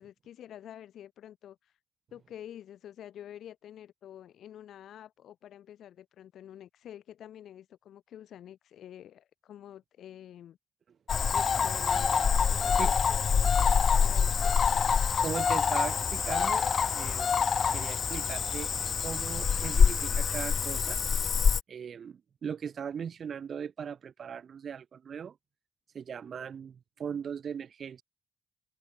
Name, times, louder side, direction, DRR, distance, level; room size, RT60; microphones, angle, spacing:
voice 1, 0.0-1.6 2.1-10.6 11.3-14.5, left 10 dB, 75° left, 3.3 m, -48 dB
Cricket / Frog, 11.1-21.6, left 6 dB, 40° left, 0.7 m, -26 dB
voice 2, 15.2-16.7 16.9-17.3 17.7-18.7 19.0-21.0 21.7-25.4 25.9-28.0, right 7 dB, 50° right, 1.3 m, -39 dB
cardioid pair, 145°, 0 cm